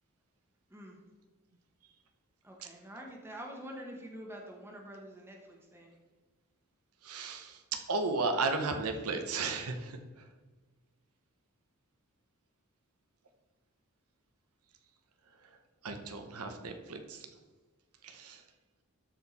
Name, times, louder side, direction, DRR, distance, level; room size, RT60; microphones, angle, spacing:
voice 1, 2.4-5.9, equal, 10° right, 0 dB, 1.0 m, -46 dB
voice 2, 7.0-10.3 15.8-17.3 18.0-18.4, right 3 dB, 85° right, 6 dB, 0.9 m, -34 dB
12.5 x 4.5 x 4.2 m, 1.3 s
head